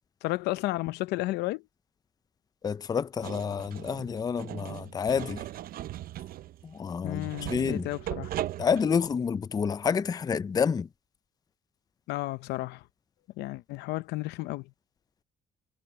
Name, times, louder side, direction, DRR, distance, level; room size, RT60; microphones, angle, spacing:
voice 1, 0.2-1.6 7.0-8.3 12.1-12.8 13.4-14.7, left 19 dB, 90° left, 0.8 m, -32 dB
voice 2, 2.6-5.4 6.6-7.9 8.6-10.9, left 6 dB, 20° left, 0.4 m, -29 dB
sound 1, 3.2-9.2, right 13 dB, 60° right, 0.6 m, -38 dB
cardioid pair, 110°, 17 cm